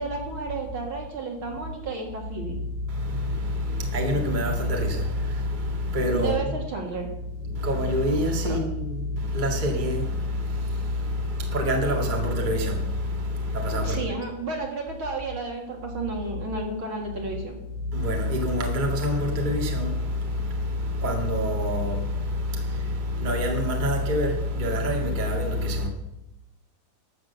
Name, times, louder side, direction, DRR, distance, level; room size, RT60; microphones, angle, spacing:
voice 1, 0.0-2.6 6.1-7.1 8.4-8.6 13.8-17.6, right 3 dB, 45° right, 2.3 m, -32 dB
voice 2, 2.9-6.5 7.4-14.1 17.9-25.9, left 1 dB, 20° right, 1.2 m, -26 dB
13.0 x 7.7 x 7.0 m
omnidirectional pair, 3.9 m